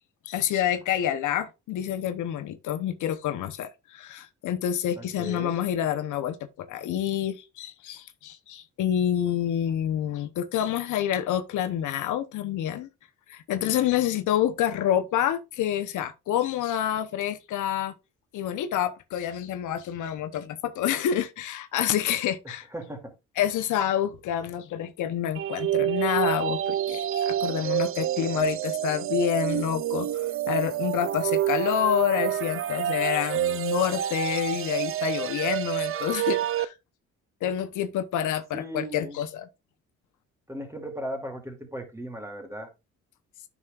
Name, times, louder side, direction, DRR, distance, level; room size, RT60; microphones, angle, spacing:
voice 1, 0.2-12.9 13.3-17.9 18.3-22.7 23.4-36.7 37.4-39.5, left 10 dB, 80° left, 1.0 m, -28 dB
voice 2, 5.0-5.6 22.4-23.1 38.5-39.2 40.5-42.7, equal, 10° right, 2.7 m, -37 dB
sound 1, 25.3-36.6, right 12 dB, 45° right, 0.5 m, -28 dB
9.7 x 6.4 x 2.5 m
cardioid pair, 90°, 30 cm